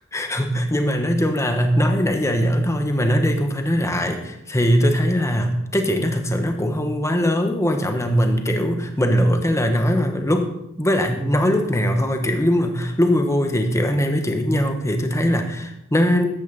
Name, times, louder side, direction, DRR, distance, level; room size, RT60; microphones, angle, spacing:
voice 1, 0.1-10.5 10.8-16.2, equal, 15° left, 5 dB, 1.4 m, -21 dB
14.0 x 10.0 x 4.2 m, 0.84 s
head